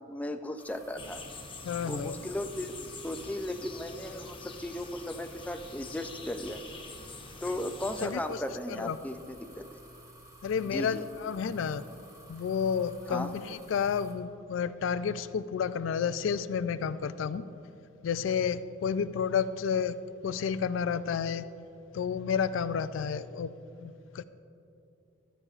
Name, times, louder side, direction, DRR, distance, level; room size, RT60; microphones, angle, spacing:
voice 1, 0.1-1.2 1.8-6.6 7.4-9.8 10.7-11.0 13.1-13.3, left 1 dB, 10° left, 7 dB, 0.4 m, -36 dB
sound 1, 0.6-14.1, right 1 dB, 15° right, 1.3 m, -53 dB
sound 2, 1.0-8.1, left 4 dB, 25° left, 0.8 m, -45 dB
voice 2, 1.6-2.2 8.0-8.4 8.8-9.0 10.4-11.8 12.3-17.5 18.0-20.0 20.2-21.5 21.9-23.5 23.8-24.2, left 7 dB, 80° left, 14 dB, 0.3 m, -31 dB
14.5 x 11.0 x 2.4 m, 2.7 s
head